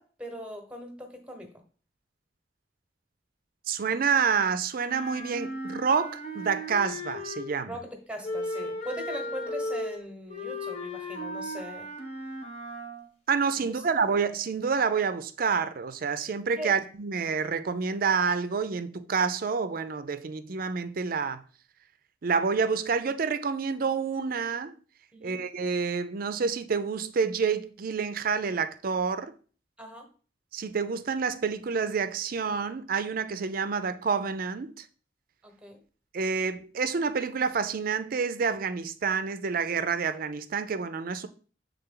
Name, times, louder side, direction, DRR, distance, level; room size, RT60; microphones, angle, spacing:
voice 1, 0.0-1.5 7.7-11.9 13.7-13.8 16.6-16.7 25.1-25.4 29.8-30.1 35.4-35.8, equal, 5° right, 1.1 m, -40 dB
voice 2, 3.7-7.7 13.3-21.4 22.2-24.8 25.2-29.3 30.5-34.8 36.1-41.3, right 5 dB, 55° right, 0.4 m, -28 dB
Wind instrument woodwind instrument, 4.8-7.7 8.2-13.1, left 1 dB, 40° left, 1.2 m, -36 dB
6.9 x 3.6 x 3.8 m
head